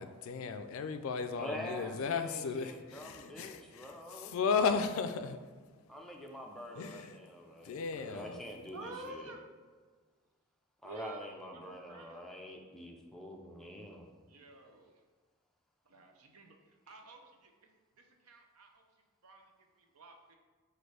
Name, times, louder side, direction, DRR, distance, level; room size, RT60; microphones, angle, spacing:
voice 1, 0.0-5.4 6.7-7.2 7.6-8.4, left 5 dB, 65° left, 9 dB, 0.3 m, -35 dB
voice 2, 1.4-4.3 5.9-9.3 10.8-14.1, equal, ahead, 0 dB, 0.4 m, -46 dB
voice 3, 8.7-9.4 10.8-12.2 14.3-14.9 15.8-17.7 18.0-18.8 19.2-20.3, right 2 dB, 85° right, 3 dB, 0.7 m, -51 dB
4.3 x 2.6 x 4.7 m, 1.5 s
head